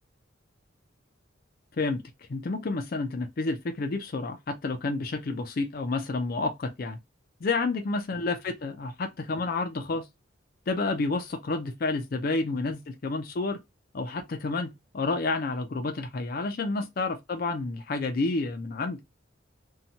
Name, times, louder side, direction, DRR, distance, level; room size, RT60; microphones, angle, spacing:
voice 1, 2.3-7.0 7.4-10.1 10.7-13.6 13.9-19.0, left 3 dB, 45° left, 0.4 m, -30 dB
2.8 x 2.2 x 2.7 m
head